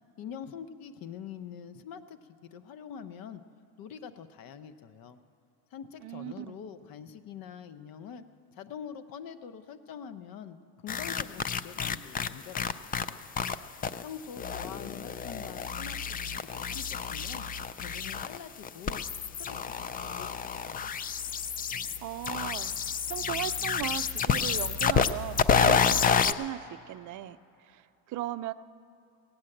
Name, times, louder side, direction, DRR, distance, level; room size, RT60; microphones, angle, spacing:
voice 1, 0.2-3.4 3.8-5.2 5.7-8.2 8.5-13.3 14.0-16.0 16.5-17.4 17.8-19.1 19.4-20.9, left 8 dB, 55° left, 11 dB, 0.9 m, -45 dB
voice 2, 6.0-6.6 22.0-22.7 23.1-27.4 27.6-28.5, right 14 dB, 45° right, 12 dB, 0.6 m, -37 dB
sound 1, 10.9-13.6 13.8-14.0 14.4-26.3, left 7 dB, 25° left, 0.4 m, -29 dB
17.5 x 8.8 x 7.8 m, 2.7 s
supercardioid pair, 105°, 41 cm